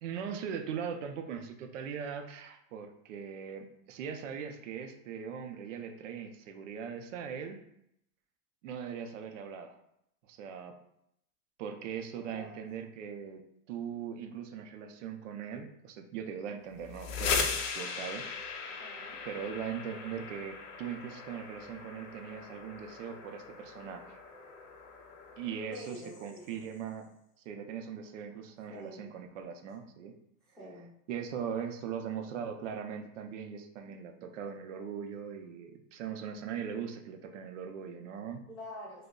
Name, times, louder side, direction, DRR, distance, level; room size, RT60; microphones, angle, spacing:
voice 1, 0.0-7.6 8.6-9.8 10.2-10.7 11.6-13.4 13.7-18.8 19.3-24.2 25.4-27.1 27.5-30.1 31.1-38.4, right 7 dB, 50° right, 5 dB, 0.5 m, -40 dB
voice 2, 12.1-12.6 18.6-19.2 25.7-26.6 28.7-29.1 30.6-30.9 38.5-39.1, left 1 dB, ahead, -9 dB, 0.8 m, -47 dB
sound 1, 16.8-26.5, left 5 dB, 75° left, 0.7 m, -39 dB
5.0 x 2.0 x 2.3 m, 0.76 s
supercardioid pair, 160°, 48 cm